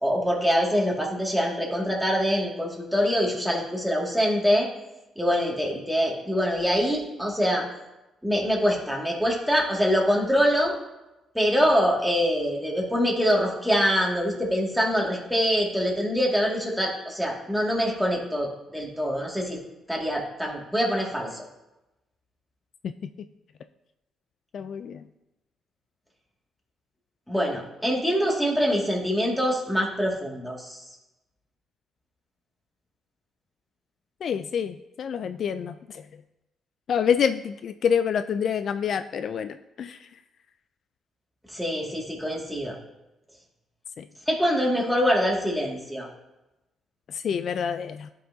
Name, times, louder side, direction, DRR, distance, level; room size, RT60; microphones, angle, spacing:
voice 1, 0.0-4.7 5.2-7.7 8.2-10.8 11.3-19.6 19.9-21.4 27.3-30.8 41.5-42.8 44.3-46.1, equal, ahead, -2 dB, 2.1 m, -24 dB
voice 2, 24.5-25.0 34.2-36.1 36.9-40.1 44.0-44.1 47.1-48.1, left 7 dB, 60° left, 11 dB, 0.3 m, -27 dB
12.5 x 5.5 x 2.7 m, 0.97 s
cardioid pair, 90°, 0 cm